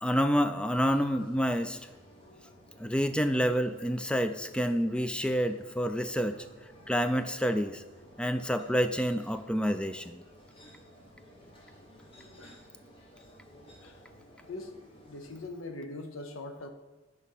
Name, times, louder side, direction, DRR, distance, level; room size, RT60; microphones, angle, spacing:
voice 1, 0.0-1.8 2.8-6.4 6.9-7.8 8.2-10.2, equal, 5° left, 9 dB, 0.3 m, -28 dB
sound 1, 0.7-15.5, equal, 25° left, 1.2 m, -55 dB
voice 2, 14.4-14.7 15.1-16.7, left 2 dB, 85° left, 6 dB, 0.8 m, -42 dB
6.5 x 5.0 x 5.5 m, 1.2 s
head